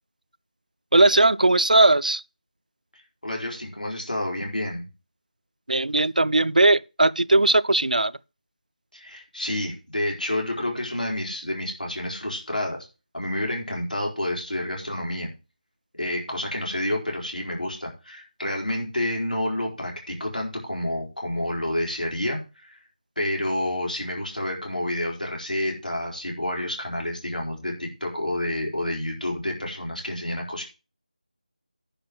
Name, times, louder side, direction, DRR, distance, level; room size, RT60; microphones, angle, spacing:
voice 1, 0.9-2.2 5.7-8.1, right 2 dB, 70° right, 0.5 m, -18 dB
voice 2, 3.2-4.9 8.9-12.9 13.1-15.3 16.0-22.8 23.2-30.6, left 1 dB, 85° left, 4.4 m, -29 dB
10.0 x 4.5 x 7.7 m
figure-of-eight pair, 165°, 4 cm